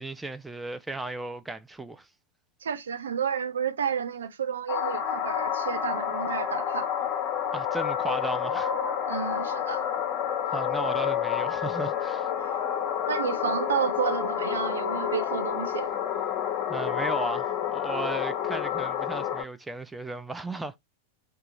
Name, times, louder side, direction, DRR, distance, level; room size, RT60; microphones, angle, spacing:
voice 1, 0.0-2.1 7.5-8.7 10.5-12.3 16.7-20.8, right 2 dB, 5° right, 0.3 m, -35 dB
voice 2, 2.6-7.1 9.1-9.8 13.1-15.9, right 7 dB, 65° right, 0.4 m, -31 dB
sound 1, 4.7-19.4, left 9 dB, 35° left, 0.6 m, -29 dB
2.8 x 2.3 x 3.7 m
figure-of-eight pair, 90°, 0 cm